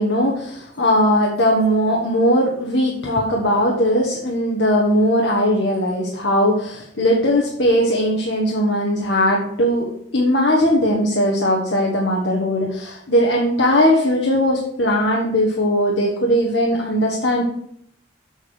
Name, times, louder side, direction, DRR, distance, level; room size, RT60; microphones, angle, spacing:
voice 1, 0.0-17.4, equal, 75° left, -2 dB, 1.4 m, -19 dB
7.2 x 6.4 x 5.2 m, 0.69 s
head